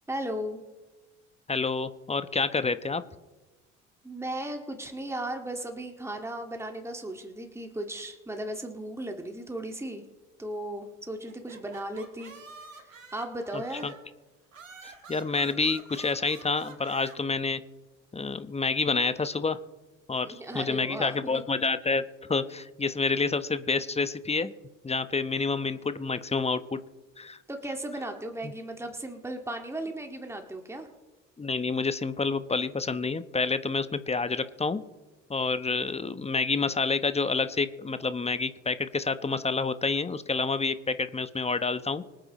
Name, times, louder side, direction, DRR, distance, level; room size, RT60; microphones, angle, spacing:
voice 1, 0.1-0.6 4.0-10.0 10.4-12.3 12.8-13.9 20.2-21.4 27.5-30.9, right 1 dB, 5° right, 4 dB, 2.0 m, -36 dB
voice 2, 1.5-3.0 13.5-13.9 14.8-17.6 18.1-19.6 20.1-22.0 22.3-24.5 24.8-26.8 27.2-27.4 28.4-28.5 31.4-34.8 35.3-42.1, left 4 dB, 15° left, 12 dB, 1.0 m, -28 dB
sound 1, 11.3-14.1 14.5-17.2, right 4 dB, 85° right, 1.6 m, -48 dB
25.0 x 8.9 x 3.1 m, 1.2 s
figure-of-eight pair, 50°, 38 cm